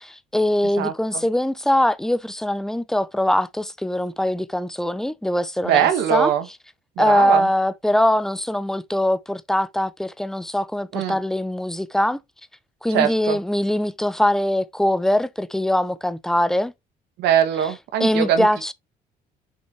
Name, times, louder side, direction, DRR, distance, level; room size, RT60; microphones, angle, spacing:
voice 1, 0.0-6.3 7.0-12.2 12.8-16.7 18.0-18.7, left 1 dB, 5° left, 0.6 m, -22 dB
voice 2, 5.6-6.5 7.0-7.5 10.9-11.2 12.9-13.4 17.2-18.5, right 9 dB, 85° right, 1.7 m, -21 dB
6.4 x 5.2 x 3.2 m
cardioid pair, 110°, 17 cm